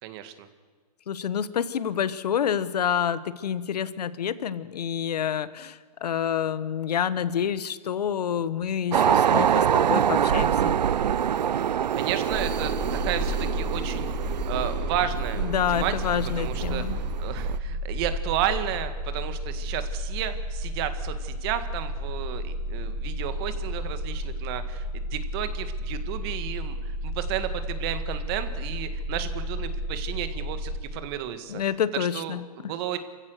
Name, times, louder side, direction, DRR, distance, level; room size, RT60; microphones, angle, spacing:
voice 1, 0.0-0.5 11.9-16.1 16.4-31.6 31.9-33.0, right 11 dB, 35° right, 9 dB, 1.8 m, -33 dB
voice 2, 1.1-10.8 15.4-17.0 31.5-32.7, left 8 dB, 70° left, 15 dB, 1.2 m, -28 dB
sound 1, 8.9-17.6, right 9 dB, 80° right, 0.7 m, -25 dB
sound 2, 12.3-30.8, equal, 10° left, 3.4 m, -32 dB
28.0 x 15.5 x 6.7 m, 1.5 s
hypercardioid pair, 145°, 21 cm